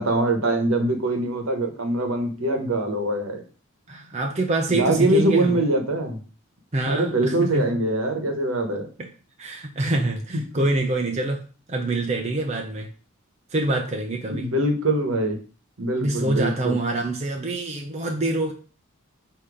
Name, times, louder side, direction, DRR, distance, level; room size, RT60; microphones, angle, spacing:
voice 1, 0.0-3.4 4.7-6.2 6.9-8.9 14.3-15.4 15.8-16.7, right 1 dB, 75° right, 4 dB, 1.2 m, -23 dB
voice 2, 3.9-5.6 6.7-7.7 9.0-9.1 9.4-11.4 11.7-12.9 13.5-14.5 16.0-18.5, right 2 dB, 30° right, 2 dB, 0.7 m, -25 dB
6.9 x 2.9 x 4.9 m, 0.39 s
head